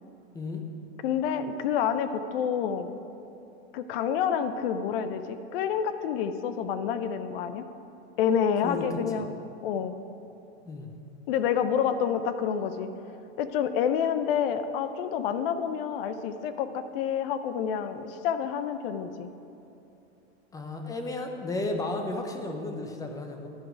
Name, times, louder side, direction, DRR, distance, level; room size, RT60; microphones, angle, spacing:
voice 1, 1.0-3.0 3.7-7.6 8.2-9.9 11.3-12.9 13.4-19.3, left 8 dB, 60° left, 11 dB, 0.6 m, -28 dB
voice 2, 20.5-23.5, left 2 dB, 10° left, 4 dB, 0.5 m, -33 dB
11.0 x 4.5 x 5.0 m, 2.8 s
supercardioid pair, 135°, 33 cm